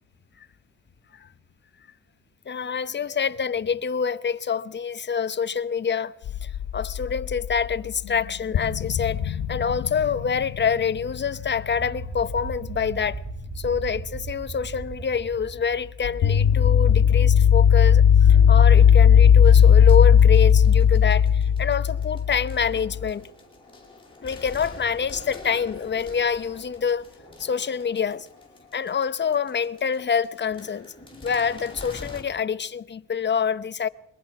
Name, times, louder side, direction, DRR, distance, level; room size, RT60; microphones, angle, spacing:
voice 1, 2.5-6.2 6.4-13.2 13.6-23.2 24.2-27.1 27.4-28.3 28.7-30.9 31.2-33.9, left 6 dB, 35° left, 0.8 m, -26 dB
sound 1, 6.3-7.7 8.1-8.2 8.5-12.9 16.0-23.1, left 8 dB, 80° left, 1.4 m, -17 dB
sound 2, 11.8-16.9, right 4 dB, 10° right, 4.1 m, -37 dB
sound 3, 19.4-32.2, left 3 dB, 15° left, 7.6 m, -46 dB
23.5 x 19.0 x 6.0 m
cardioid pair, 90°, 30 cm